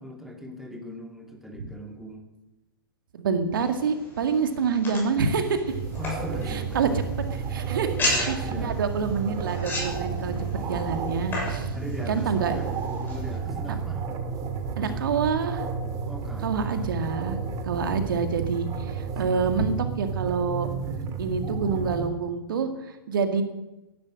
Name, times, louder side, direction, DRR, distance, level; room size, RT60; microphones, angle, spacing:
voice 1, 0.0-2.2 6.0-6.9 8.0-8.8 10.5-10.9 11.7-12.7 13.1-14.0 14.8-15.3 16.1-16.9 19.2-19.4, left 1 dB, ahead, 2 dB, 2.6 m, -39 dB
voice 2, 3.1-5.7 6.5-6.9 7.3-10.3 10.7-11.7 12.1-12.5 13.7-13.8 14.8-15.7 16.4-17.4 17.6-20.7 21.2-23.4, right 5 dB, 65° right, 7 dB, 2.0 m, -27 dB
sound 1, 3.6-13.4, left 2 dB, 15° left, 7.2 m, -36 dB
sound 2, 5.7-22.1, right 6 dB, 30° right, 2.2 m, -31 dB
17.5 x 11.5 x 6.4 m, 1.0 s
hypercardioid pair, 115°, 12 cm